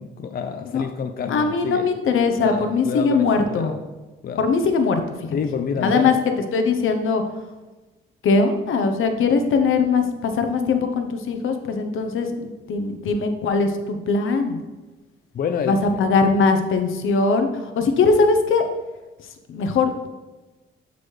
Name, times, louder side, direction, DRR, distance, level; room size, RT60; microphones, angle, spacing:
voice 1, 0.0-1.9 2.4-3.7 4.2-4.4 5.3-6.1 15.3-15.8, left 6 dB, 45° left, 6 dB, 0.5 m, -28 dB
voice 2, 1.3-3.8 4.4-5.0 5.8-6.1 6.5-7.2 8.2-14.6 15.6-18.7 19.5-19.9, left 4 dB, 70° left, 6 dB, 0.9 m, -20 dB
12.0 x 4.2 x 3.3 m, 1.2 s
cardioid pair, 105°, 21 cm